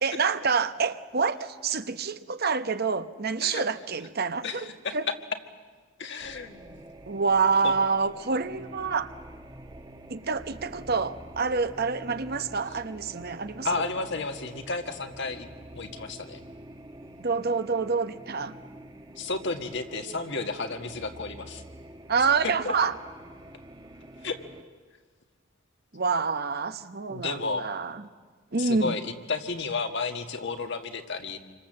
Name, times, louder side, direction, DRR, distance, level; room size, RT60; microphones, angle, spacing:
voice 1, 0.0-5.1 7.1-9.1 10.1-13.9 17.2-18.6 22.1-23.0 25.9-28.1 28.5-29.0, right 5 dB, 50° right, 1.0 m, -27 dB
voice 2, 4.4-5.0 6.0-6.8 7.6-7.7 13.6-15.5 15.7-16.4 19.2-21.6 24.2-24.4 27.1-27.7 28.6-31.4, left 3 dB, 60° left, 1.9 m, -32 dB
sound 1, 6.2-24.6, right 1 dB, 20° right, 1.3 m, -47 dB
28.0 x 25.0 x 7.7 m
head